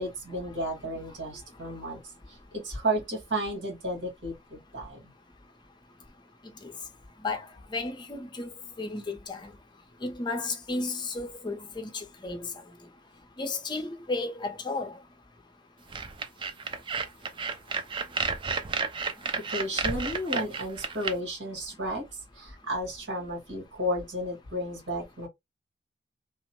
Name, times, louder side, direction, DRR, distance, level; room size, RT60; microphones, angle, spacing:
voice 1, 0.0-2.0 2.3-5.1 19.5-22.0 22.3-25.3, equal, 80° right, 1.7 m, -33 dB
voice 2, 7.7-8.5 8.8-9.5 10.0-12.5 13.4-15.0, left 3 dB, 25° left, 0.6 m, -33 dB
sound 1, 15.9-21.1, right 4 dB, 25° right, 0.4 m, -31 dB
2.9 x 2.1 x 2.8 m
head